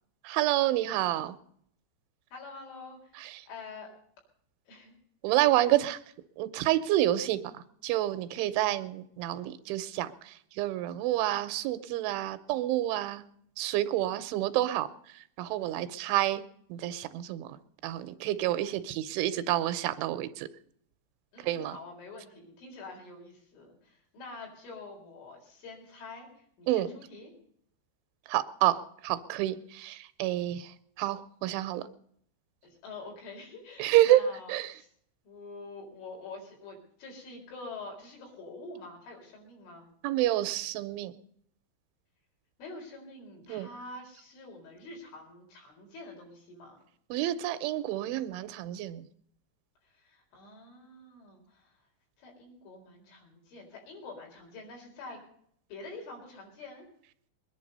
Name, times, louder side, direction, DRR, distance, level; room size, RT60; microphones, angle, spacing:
voice 1, 0.2-1.4 3.2-3.4 5.2-6.0 6.4-13.2 13.6-14.9 15.1-16.4 16.7-17.6 17.8-20.5 21.4-21.8 26.7-26.9 28.3-31.9 33.8-34.8 40.0-41.1 43.5-43.7 47.1-49.1, right 14 dB, 85° right, 13 dB, 3.2 m, -29 dB
voice 2, 2.3-3.1 3.5-3.9 4.7-4.9 14.1-14.2 15.6-16.0 21.3-27.3 32.8-34.9 35.2-39.9 42.6-46.8 49.8-51.7 52.2-55.2 55.7-56.8, left 3 dB, 80° left, 0 dB, 6.6 m, -46 dB
22.0 x 10.5 x 5.4 m, 0.67 s
omnidirectional pair, 5.4 m